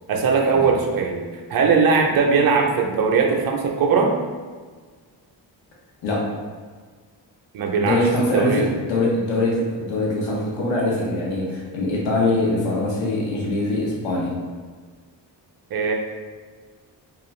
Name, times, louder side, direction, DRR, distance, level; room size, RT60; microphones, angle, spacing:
voice 1, 0.1-4.1 7.5-8.0 8.3-8.7 15.7-15.9, right 5 dB, 55° right, 2 dB, 0.5 m, -20 dB
voice 2, 7.8-14.3, left 2 dB, 90° left, -4 dB, 0.7 m, -23 dB
2.4 x 2.4 x 3.0 m, 1.5 s
cardioid pair, 75°, 45 cm